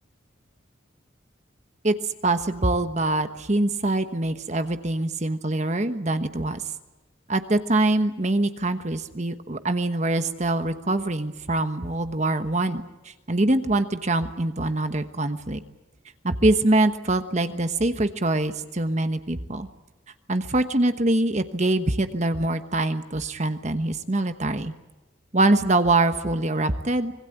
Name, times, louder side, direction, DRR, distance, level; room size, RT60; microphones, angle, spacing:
voice 1, 1.8-6.6 7.3-15.6 16.2-19.7 20.3-24.7 25.3-27.1, right 2 dB, 35° right, 9 dB, 1.2 m, -24 dB
25.5 x 20.5 x 9.2 m, 1.0 s
head